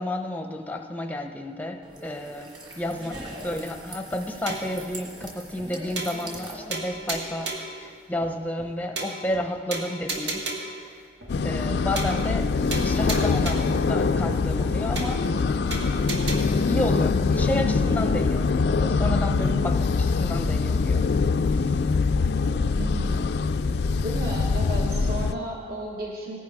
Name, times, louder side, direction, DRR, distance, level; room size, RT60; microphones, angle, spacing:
voice 1, 0.0-10.5 10.9-11.0 11.4-15.3 16.7-21.1 21.5-21.9, left 1 dB, 10° left, 5 dB, 0.7 m, -31 dB
sound 1, 1.8-7.5, right 1 dB, 25° right, 1.8 m, -42 dB
sound 2, 4.5-4.8 5.2-5.3 5.6-5.7 6.0-6.4 6.7-7.8 8.2-8.3 8.6-8.7 9.0-9.4 9.7-10.8 11.2-11.3 11.6-11.7 12.0-12.4 12.7-13.8 14.2-14.3 14.6-14.7 15.0-15.4 15.7-16.4, right 3 dB, 80° right, 1.8 m, -33 dB
sound 3, 11.3-25.3, left 4 dB, 65° left, 0.4 m, -23 dB
voice 2, 22.8-23.2 24.0-26.4, right 1 dB, 55° right, -2 dB, 1.4 m, -33 dB
19.0 x 10.5 x 3.5 m, 2.1 s
head